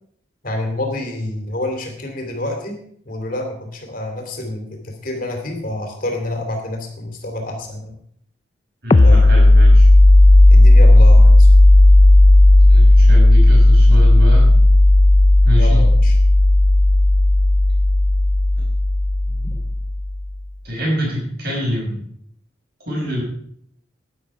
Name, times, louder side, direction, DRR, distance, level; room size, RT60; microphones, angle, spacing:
voice 1, 0.4-2.8 3.0-7.9 9.0-9.3 10.5-11.5 15.6-16.1, left 1 dB, 50° left, 3 dB, 2.9 m, -28 dB
voice 2, 8.8-9.9 12.6-14.5 15.4-15.9 18.6-18.7 19.3-19.6 20.6-22.0 22.9-23.2, equal, 55° right, -2 dB, 5.6 m, -25 dB
sound 1, 8.9-20.2, left 1 dB, 25° left, 0.4 m, -11 dB
11.0 x 10.5 x 4.8 m, 0.65 s
head